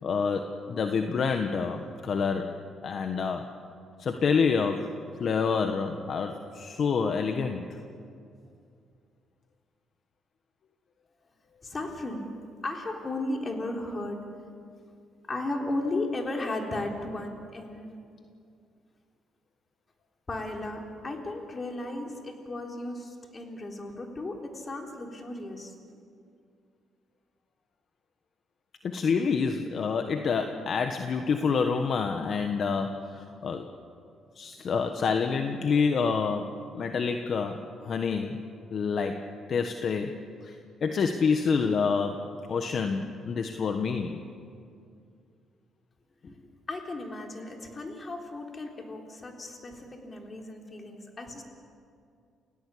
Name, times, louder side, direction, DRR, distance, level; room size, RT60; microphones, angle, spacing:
voice 1, 0.0-2.5 2.8-3.5 4.0-7.8 28.8-33.7 34.4-38.4 38.7-39.2 39.5-44.2, left 5 dB, 55° left, 5 dB, 1.4 m, -28 dB
voice 2, 11.6-12.3 12.6-14.2 15.3-17.9 20.3-25.7 46.2-46.4 46.7-51.4, left 2 dB, 30° left, 2 dB, 4.1 m, -35 dB
29.0 x 17.0 x 8.6 m, 2.4 s
cardioid pair, 90°, 0 cm